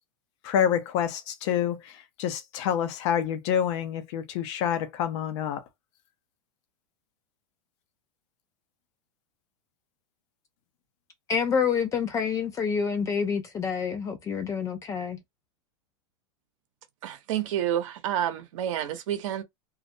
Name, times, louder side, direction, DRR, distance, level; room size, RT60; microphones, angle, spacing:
voice 1, 0.4-5.6, left 9 dB, 60° left, 0.6 m, -27 dB
voice 2, 11.3-15.2, left 6 dB, 20° left, 0.4 m, -27 dB
voice 3, 17.0-19.4, right 11 dB, 70° right, 0.8 m, -29 dB
2.3 x 2.0 x 2.6 m
supercardioid pair, 145°, 17 cm